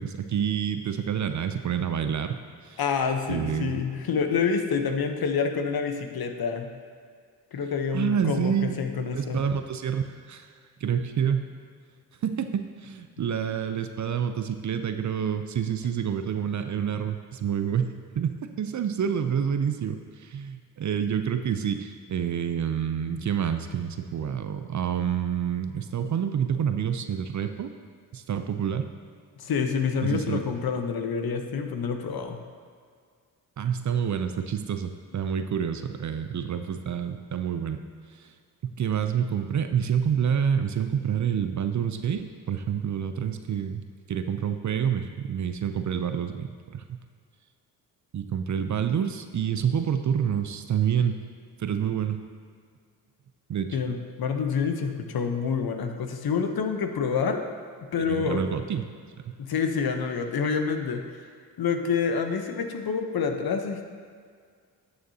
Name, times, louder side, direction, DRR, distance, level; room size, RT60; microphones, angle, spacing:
voice 1, 0.0-2.8 3.3-3.8 7.9-8.8 9.1-10.5 10.8-11.5 12.2-27.7 28.1-28.9 30.0-30.5 33.6-37.8 38.1-38.3 38.6-43.8 44.1-47.0 48.1-51.2 51.6-52.2 53.5-53.8 58.0-58.9 59.2-59.3, right 8 dB, 40° right, 8 dB, 0.6 m, -28 dB
voice 2, 2.8-6.7 7.5-9.4 29.4-32.4 53.7-57.4 57.9-58.4 59.4-61.0 61.6-63.8, left 6 dB, 55° left, 6 dB, 0.9 m, -27 dB
11.0 x 6.4 x 2.8 m, 2.1 s
supercardioid pair, 50°, 44 cm